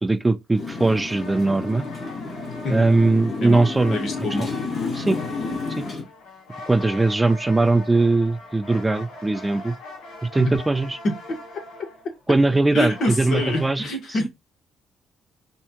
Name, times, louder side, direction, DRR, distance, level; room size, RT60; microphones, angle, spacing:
voice 1, 0.0-1.8 2.7-4.0 4.9-5.2 5.8-5.9 6.7-9.7 10.3-11.0 12.3-13.9, right 2 dB, 15° right, 0.3 m, -20 dB
Motorcycle, 0.5-6.0, left 4 dB, 40° left, 1.7 m, -31 dB
sound 1, 0.6-13.8, left 2 dB, 85° left, 1.4 m, -41 dB
voice 2, 3.9-4.5 10.4-10.6 11.0-11.4 12.7-14.3, left 1 dB, 60° left, 1.3 m, -26 dB
4.3 x 2.3 x 2.8 m
cardioid pair, 90°, 0 cm